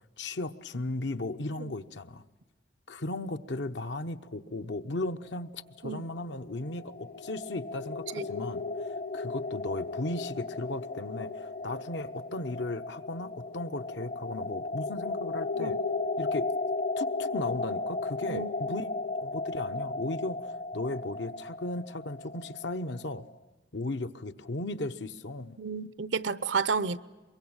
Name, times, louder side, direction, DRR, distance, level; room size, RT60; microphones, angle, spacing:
voice 1, 0.0-2.2 2.9-8.6 9.1-15.8 16.2-16.5 17.0-18.9 19.2-23.3 23.7-25.6, left 2 dB, 80° left, 1.0 m, -36 dB
sound 1, 6.1-23.0, left 3 dB, 45° left, 0.8 m, -35 dB
voice 2, 18.2-18.8 25.6-27.0, right 5 dB, 90° right, 0.8 m, -32 dB
23.0 x 23.0 x 8.9 m
head